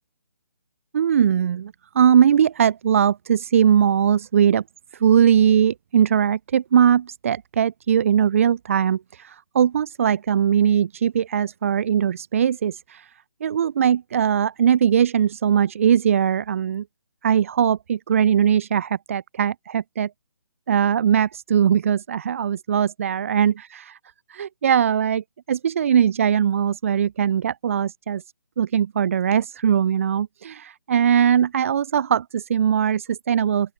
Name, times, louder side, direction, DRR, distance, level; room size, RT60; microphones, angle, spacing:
voice 1, 0.9-4.6 5.0-13.1 13.4-16.8 17.2-20.1 20.7-23.5 24.3-28.2 28.6-33.7, right 8 dB, 30° right, 0.5 m, -20 dB
open air
figure-of-eight pair, 145°, 15 cm